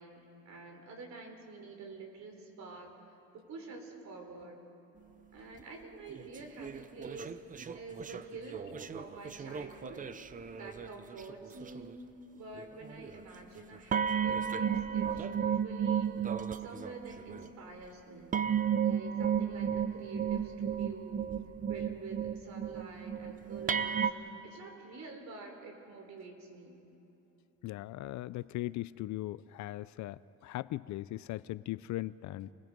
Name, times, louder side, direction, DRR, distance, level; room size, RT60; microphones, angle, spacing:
voice 1, 0.0-2.9 3.3-4.6 5.3-7.3 7.7-10.1 10.5-11.9 12.3-16.1 16.6-18.3 18.8-21.2 21.7-24.1 24.4-26.8, right 3 dB, 55° right, 3 dB, 3.8 m, -48 dB
sound 1, 6.1-11.3 11.6-11.9 12.5-13.2 13.9-17.5 18.3-24.1, right 8 dB, 25° right, 0.6 m, -33 dB
voice 2, 27.6-32.5, left 16 dB, 65° left, 17 dB, 0.5 m, -39 dB
29.0 x 21.0 x 5.2 m, 3.0 s
cardioid pair, 145°, 32 cm